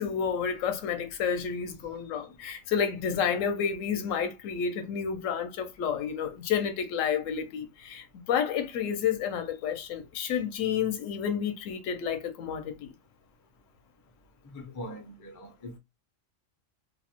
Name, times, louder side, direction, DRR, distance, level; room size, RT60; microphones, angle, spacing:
voice 1, 0.0-12.9, left 7 dB, 80° left, 0.9 m, -30 dB
voice 2, 14.4-15.8, left 1 dB, 30° left, 0.3 m, -42 dB
2.5 x 2.0 x 2.8 m
omnidirectional pair, 1.4 m